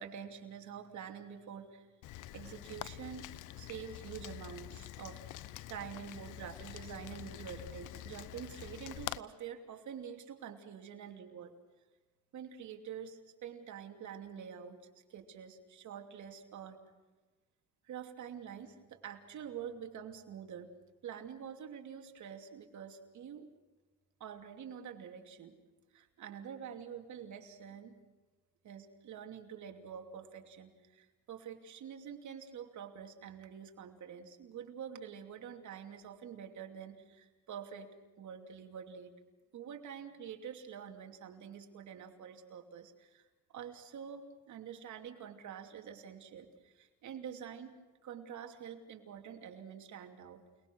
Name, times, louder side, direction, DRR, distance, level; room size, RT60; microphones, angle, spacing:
voice 1, 0.0-1.9 2.3-11.5 12.3-16.8 17.8-20.7 21.0-23.5 24.2-25.6 25.9-27.9 28.6-37.9 38.2-39.1 39.5-43.2 43.5-47.8 48.0-50.4, right 8 dB, 70° right, 4 dB, 2.9 m, -47 dB
Rain, 2.0-9.2, left 14 dB, 90° left, 0.8 m, -46 dB
29.5 x 20.0 x 6.3 m, 1.2 s
cardioid pair, 90°, 30 cm